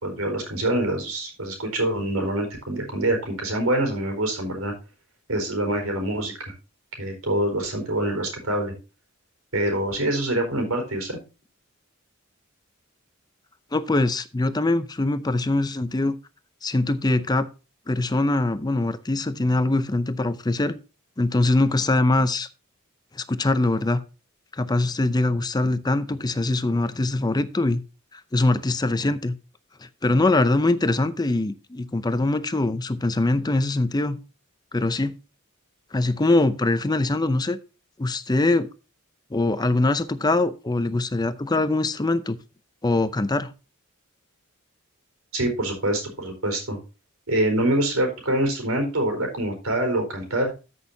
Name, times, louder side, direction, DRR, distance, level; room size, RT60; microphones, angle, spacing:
voice 1, 0.0-4.7 5.3-6.3 7.0-8.7 9.5-11.2 45.3-46.8 47.3-50.5, right 1 dB, 90° right, 4.3 m, -25 dB
voice 2, 13.7-16.2 16.6-17.5 17.9-20.8 21.2-22.5 23.1-24.0 24.5-27.8 28.1-29.4 30.0-34.2 34.7-35.1 35.9-37.6 38.0-38.7 39.3-42.4 42.8-43.5, left 2 dB, 20° left, 0.5 m, -23 dB
13.5 x 6.3 x 2.8 m
head